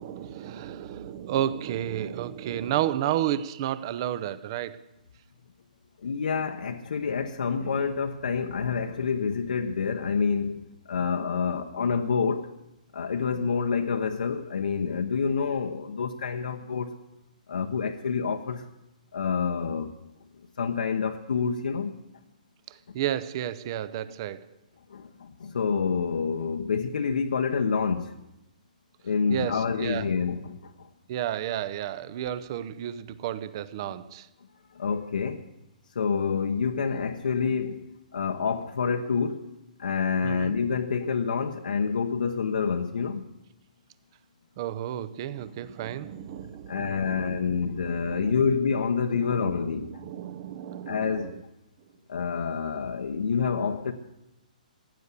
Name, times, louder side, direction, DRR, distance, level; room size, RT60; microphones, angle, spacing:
voice 1, 0.0-4.8 22.7-24.5 29.3-30.1 31.1-34.3 40.2-40.5 44.6-48.4 49.1-51.4, right 11 dB, 30° right, 0.6 m, -32 dB
voice 2, 6.0-12.5 12.9-16.9 17.5-18.6 19.1-19.9 20.6-22.0 24.9-28.2 29.0-30.9 34.7-35.5 35.9-39.5 39.8-43.3 46.7-49.9 50.9-51.3 52.1-53.9, left 5 dB, 75° left, 1.0 m, -28 dB
15.5 x 9.5 x 8.3 m
hypercardioid pair, 165°, 5 cm